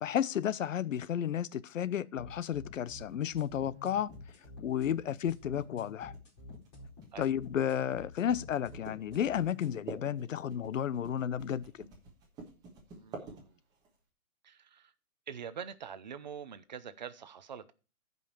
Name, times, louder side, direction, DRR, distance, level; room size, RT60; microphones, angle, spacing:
voice 1, 0.0-4.1 4.6-6.1 7.2-11.6, left 9 dB, 65° left, 0.7 m, -32 dB
sound 1, 2.2-9.7, left 3 dB, 30° left, 4.5 m, -49 dB
sound 2, 2.9-13.9, right 4 dB, 10° right, 1.3 m, -50 dB
voice 2, 13.0-13.6 14.4-14.9 15.3-17.7, right 7 dB, 30° right, 0.6 m, -45 dB
14.5 x 5.4 x 4.4 m
hypercardioid pair, 165°, 43 cm